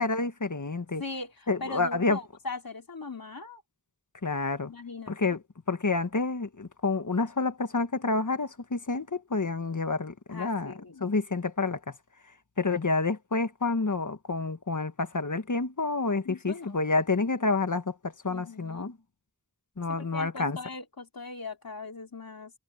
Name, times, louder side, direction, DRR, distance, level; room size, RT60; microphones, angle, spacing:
voice 1, 0.0-1.0 1.5-2.2 4.2-4.7 5.1-5.4 5.7-10.7 11.0-12.0 12.6-19.0 19.8-20.6, left 3 dB, 60° left, 1.6 m, -29 dB
voice 2, 1.0-3.6 4.6-5.4 10.3-11.1 16.2-16.8 18.3-18.9 20.0-22.5, left 3 dB, 80° left, 3.1 m, -40 dB
wide cardioid pair, 50°, 35 cm